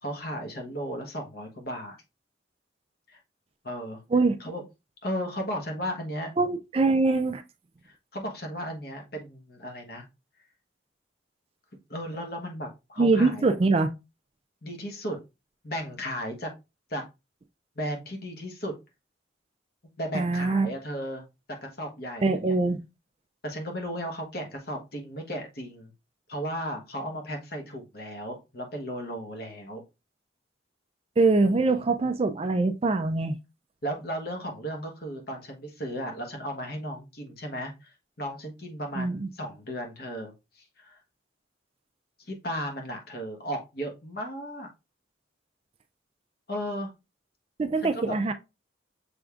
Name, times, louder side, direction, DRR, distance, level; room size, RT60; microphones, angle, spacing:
voice 1, 0.0-2.0 3.1-3.2 3.6-4.0 4.4-4.6 5.0-6.3 7.8-10.0 11.9-13.5 14.6-15.2 15.6-16.5 16.9-17.0 17.7-18.7 20.0-21.3 21.6-22.6 23.4-25.9 26.3-29.8 31.4-31.9 33.8-41.0 42.2-44.7 46.5-46.9 47.9-48.2, equal, 50° left, 1.2 m, -35 dB
voice 2, 6.4-7.4 13.0-13.9 20.1-20.7 22.2-22.8 31.2-33.3 39.0-39.3 47.6-48.3, right 3 dB, 30° right, 0.3 m, -23 dB
6.3 x 3.4 x 2.4 m
head